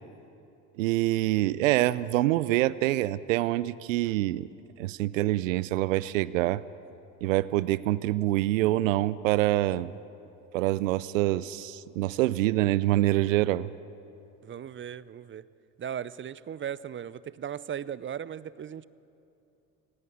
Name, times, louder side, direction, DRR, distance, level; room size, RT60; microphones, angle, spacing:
voice 1, 0.8-4.5 4.8-6.6 7.2-9.9 10.5-13.7, right 16 dB, 90° right, 19 dB, 0.5 m, -25 dB
voice 2, 14.4-15.5 15.8-18.8, right 9 dB, 30° right, 19 dB, 0.6 m, -37 dB
19.5 x 16.5 x 8.6 m, 2.7 s
hypercardioid pair, 70°, 38 cm